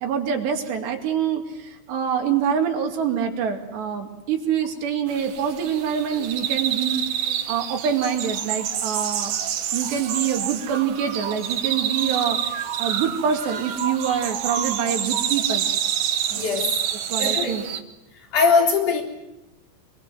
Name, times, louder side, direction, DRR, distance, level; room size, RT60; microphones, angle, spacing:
voice 1, 0.0-9.3 9.7-15.7 16.3-16.5 17.1-17.6, right 7 dB, 80° right, 3 dB, 4.7 m, -25 dB
sound 1, 5.1-17.8, right 9 dB, 60° right, 2.3 m, -27 dB
voice 2, 16.4-16.7 17.2-17.5 18.3-19.0, left 5 dB, 50° left, 3 dB, 5.1 m, -20 dB
24.5 x 24.0 x 7.7 m, 0.94 s
omnidirectional pair, 4.8 m